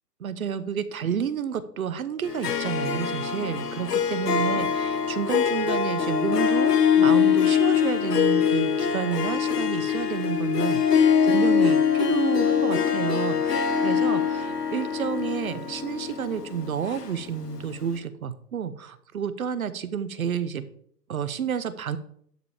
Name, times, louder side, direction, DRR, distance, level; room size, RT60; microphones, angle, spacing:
voice 1, 0.2-20.7 21.1-22.0, right 8 dB, 55° right, 14 dB, 0.9 m, -30 dB
Harp, 2.2-17.6, left 7 dB, 70° left, 1.6 m, -23 dB
11.5 x 5.6 x 4.9 m, 0.65 s
hypercardioid pair, 170°, 49 cm